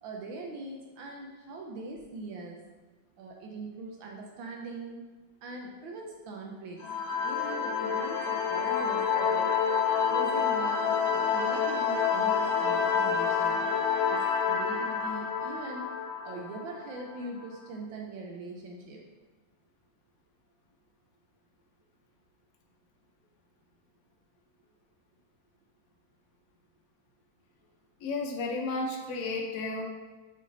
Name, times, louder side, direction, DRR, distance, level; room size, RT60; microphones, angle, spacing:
voice 1, 0.0-2.6 3.2-5.0 5.4-6.8 7.2-9.5 10.1-13.6 14.1-15.9 16.2-19.0, right 2 dB, 80° right, 0 dB, 1.5 m, -41 dB
sound 1, 6.8-17.2, left 6 dB, 85° left, 1.4 m, -28 dB
voice 2, 28.0-29.8, left 3 dB, 65° left, 0 dB, 0.9 m, -32 dB
6.1 x 4.3 x 3.9 m, 1.2 s
omnidirectional pair, 2.1 m